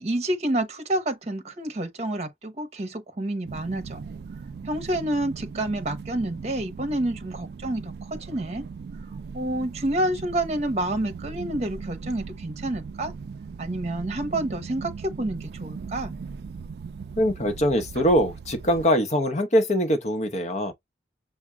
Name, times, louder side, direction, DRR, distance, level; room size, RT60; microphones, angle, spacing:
voice 1, 0.0-4.0 4.6-8.6 9.3-13.1 13.6-16.2, right 1 dB, 40° right, 0.9 m, -29 dB
sound 1, 3.5-18.9, right 5 dB, 65° right, 0.3 m, -39 dB
voice 2, 17.2-20.7, equal, 40° left, 0.8 m, -23 dB
5.8 x 2.1 x 3.5 m
head